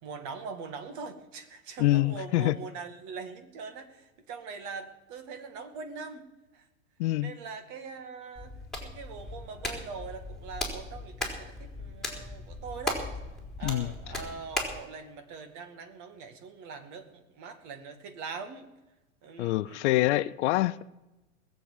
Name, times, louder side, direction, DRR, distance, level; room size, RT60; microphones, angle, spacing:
voice 1, 0.0-6.2 6.5-6.7 7.2-8.5 8.8-13.0 13.6-18.7 19.2-19.8, right 5 dB, 45° right, 2.2 m, -42 dB
voice 2, 1.8-2.6 7.0-7.3 13.6-13.9 19.4-20.8, left 17 dB, 60° left, 0.6 m, -25 dB
Hands, 8.4-14.8, left 2 dB, ahead, 4.0 m, -37 dB
20.5 x 7.7 x 7.2 m
hypercardioid pair, 105°, 40 cm